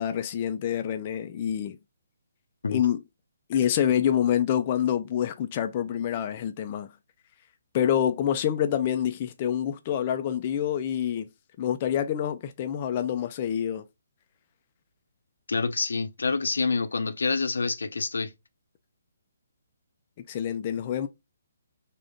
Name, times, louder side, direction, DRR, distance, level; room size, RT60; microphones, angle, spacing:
voice 1, 0.0-1.8 2.7-3.0 3.5-6.9 7.7-11.3 11.6-13.9 20.3-21.1, left 9 dB, 30° left, 0.3 m, -27 dB
voice 2, 15.5-18.3, left 4 dB, 85° left, 0.6 m, -27 dB
3.5 x 2.1 x 3.8 m
hypercardioid pair, 165°, 0 cm